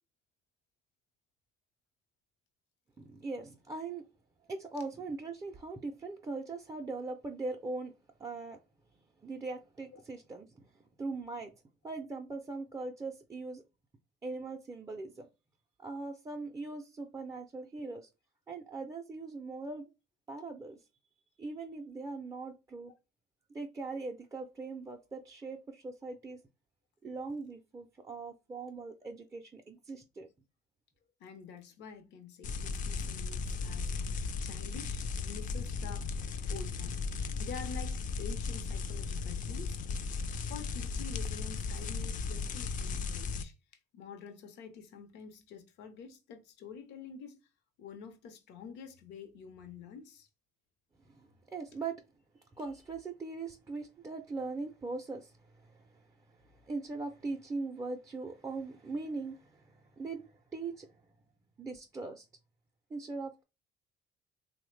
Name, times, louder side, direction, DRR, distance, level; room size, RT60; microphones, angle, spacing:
voice 1, 3.0-4.1 4.5-7.9 8.2-8.6 9.2-10.7 11.0-11.5 11.8-13.6 14.2-15.3 15.8-18.1 18.5-19.9 20.3-20.8 21.4-22.9 23.5-26.4 27.0-30.3 51.1-51.9 52.6-61.0 61.6-62.3 62.9-63.4, right 3 dB, 20° right, 0.4 m, -41 dB
voice 2, 31.2-34.0 34.4-36.1 36.5-37.0 37.4-39.8 40.4-43.5 43.9-47.4 47.8-50.3, left 6 dB, 85° left, 0.7 m, -48 dB
sound 1, 32.4-43.4, left 4 dB, 50° left, 0.4 m, -36 dB
3.1 x 2.1 x 3.1 m
cardioid pair, 105°, 17 cm